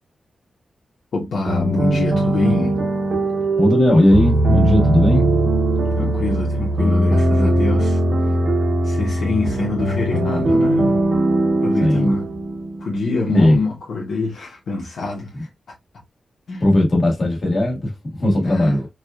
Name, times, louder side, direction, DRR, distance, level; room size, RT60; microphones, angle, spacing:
voice 1, 1.1-2.8 5.9-8.0 8.8-11.0 11.6-12.2 12.8-15.5 16.5-16.6 18.2-18.8, left 3 dB, 75° left, 1.1 m, -24 dB
sound 1, 1.5-13.2, right 1 dB, 45° right, 0.8 m, -19 dB
voice 2, 3.6-5.3 11.8-12.2 13.3-13.6 15.3-15.4 16.6-18.9, left 1 dB, 40° left, 1.7 m, -17 dB
4.7 x 2.4 x 2.3 m
wide cardioid pair, 135°, 0 cm